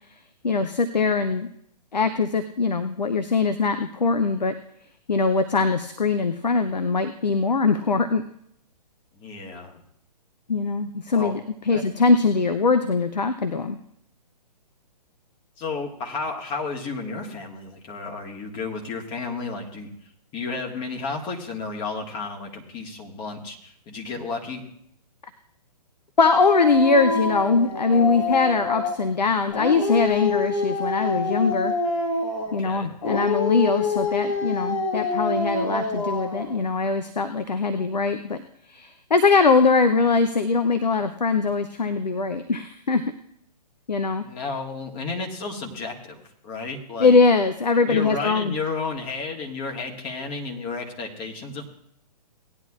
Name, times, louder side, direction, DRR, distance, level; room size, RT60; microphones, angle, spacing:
voice 1, 0.4-1.5 1.9-4.5 5.1-8.2 10.5-13.8 26.2-31.7 32.5-38.4 38.7-43.0 43.9-44.2 47.0-48.6, left 4 dB, 80° left, 9 dB, 0.7 m, -22 dB
voice 2, 9.1-9.8 11.1-11.3 11.7-11.8 15.6-19.9 20.3-24.6 32.5-32.9 44.2-47.2 47.8-51.7, left 4 dB, 25° left, 1 dB, 1.7 m, -32 dB
Dog, 26.2-29.0 29.5-32.6 33.0-36.5, left 4 dB, 50° left, 1.6 m, -26 dB
18.0 x 10.5 x 2.4 m, 0.71 s
figure-of-eight pair, 125°, 21 cm